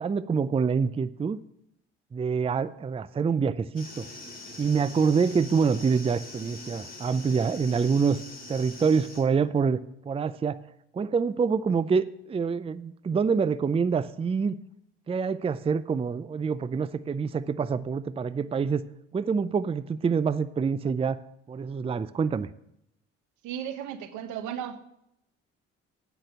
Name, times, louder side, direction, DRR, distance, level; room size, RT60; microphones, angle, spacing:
voice 1, 0.0-1.4 2.1-4.1 4.6-8.2 8.5-9.8 10.1-10.6 10.9-14.6 15.1-18.8 19.1-21.2 21.5-22.5, right 5 dB, 20° right, 15 dB, 0.5 m, -26 dB
sound 1, 3.7-9.2, left 2 dB, 30° left, 5.3 m, -43 dB
voice 2, 23.4-24.8, right 9 dB, 75° right, 9 dB, 1.2 m, -35 dB
8.9 x 6.0 x 8.2 m, 0.78 s
supercardioid pair, 70°, 30 cm